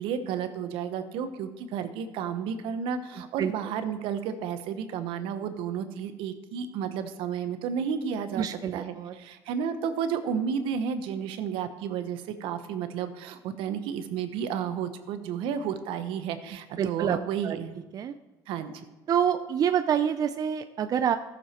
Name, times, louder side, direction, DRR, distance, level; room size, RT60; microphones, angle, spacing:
voice 1, 0.0-8.5 8.7-17.8 18.5-18.8, right 7 dB, 75° right, 10 dB, 1.0 m, -32 dB
voice 2, 8.4-9.1 16.8-17.2 17.4-17.6 17.9-18.1 19.1-21.2, right 8 dB, 45° right, 9 dB, 0.5 m, -26 dB
14.0 x 6.9 x 4.4 m, 1.2 s
supercardioid pair, 95°, 9 cm